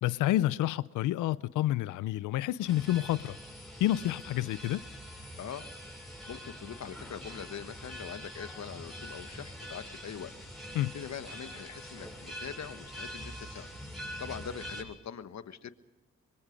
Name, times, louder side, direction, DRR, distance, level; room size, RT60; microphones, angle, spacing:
voice 1, 0.0-3.4 3.8-4.8 10.7-10.9, left 14 dB, 90° left, 0.6 m, -29 dB
sound 1, 2.7-14.8, equal, ahead, 7.4 m, -44 dB
voice 2, 6.0-13.7 14.2-15.7, left 8 dB, 65° left, 1.4 m, -43 dB
24.0 x 24.0 x 5.2 m
supercardioid pair, 50°, 30 cm